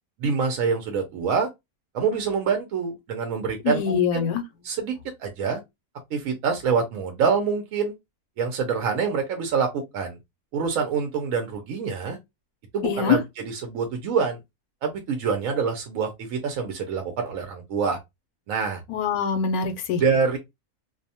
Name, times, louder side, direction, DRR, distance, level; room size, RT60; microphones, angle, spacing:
voice 1, 0.2-1.5 1.9-4.3 4.6-5.6 6.1-7.9 8.4-10.2 10.5-12.2 12.7-14.4 14.8-18.0 18.5-18.8 20.0-20.4, right 5 dB, 70° right, 0.9 m, -26 dB
voice 2, 3.6-4.4 12.8-13.2 18.9-20.0, left 7 dB, 85° left, 1.1 m, -23 dB
2.6 x 2.1 x 2.7 m
omnidirectional pair, 1.6 m